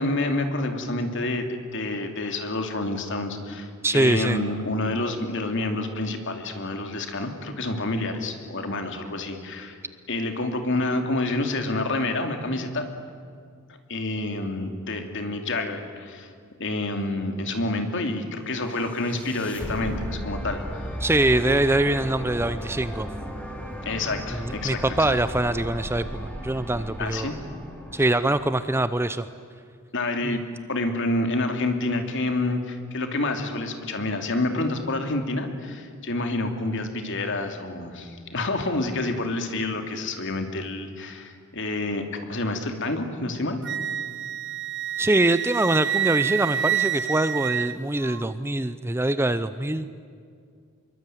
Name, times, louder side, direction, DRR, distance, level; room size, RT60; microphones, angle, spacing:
voice 1, 0.0-9.8 10.1-12.9 13.9-16.3 16.6-21.0 23.8-25.2 27.0-27.4 29.9-30.4 30.7-43.6, left 2 dB, 55° left, 5 dB, 2.8 m, -28 dB
voice 2, 3.8-4.4 21.0-23.1 24.3-27.3 27.9-29.3 30.2-30.4 45.0-49.9, right 2 dB, 10° right, 12 dB, 0.6 m, -23 dB
sound 1, 18.6-28.8, equal, 5° left, 3.1 m, -35 dB
Wind instrument woodwind instrument, 43.6-48.2, right 9 dB, 50° right, 1.1 m, -28 dB
25.5 x 23.0 x 9.2 m, 2.2 s
head